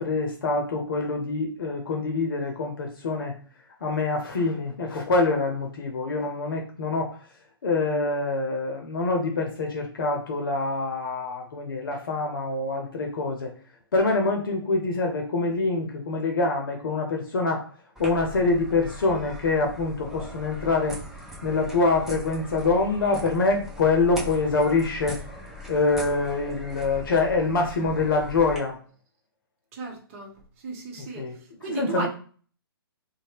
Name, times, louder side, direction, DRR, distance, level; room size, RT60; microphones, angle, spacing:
voice 1, 0.0-3.3 3.8-7.2 7.6-13.5 13.9-17.7 18.0-21.0 21.4-25.2 25.7-28.8 31.2-31.4 31.7-32.1, left 3 dB, 60° left, 0.7 m, -25 dB
sound 1, 18.0-28.6, left 1 dB, 5° right, 0.7 m, -40 dB
voice 2, 29.7-32.1, right 3 dB, 35° right, 0.9 m, -35 dB
2.7 x 2.2 x 3.3 m
figure-of-eight pair, 130°, 13 cm